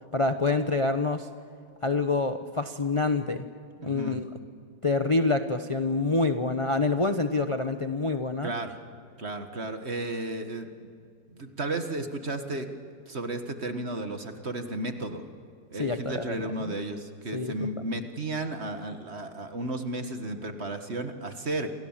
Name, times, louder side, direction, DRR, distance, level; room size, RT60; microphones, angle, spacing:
voice 1, 0.1-1.3 1.8-3.5 3.8-4.3 4.8-8.5 15.8-16.8 17.3-17.7, left 3 dB, 25° left, 7 dB, 0.7 m, -27 dB
voice 2, 3.8-4.2 8.4-8.8 9.2-10.9 11.3-12.7 13.1-15.3 15.7-21.7, right 2 dB, 35° right, 7 dB, 1.9 m, -33 dB
29.5 x 27.0 x 7.5 m, 2.4 s
omnidirectional pair, 1.9 m